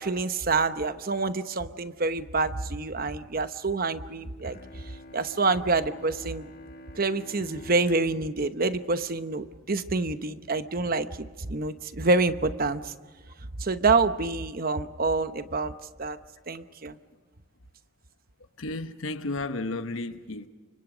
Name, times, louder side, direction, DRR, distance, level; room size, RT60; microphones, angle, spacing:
voice 1, 0.0-6.5 6.9-12.9 13.6-15.7 16.0-16.2 16.5-17.0, right 3 dB, 45° right, 1.0 m, -27 dB
Bowed string instrument, 4.4-10.0, left 1 dB, 50° left, 1.7 m, -49 dB
voice 2, 18.6-20.5, left 2 dB, 80° left, 1.1 m, -33 dB
29.5 x 25.0 x 5.1 m
head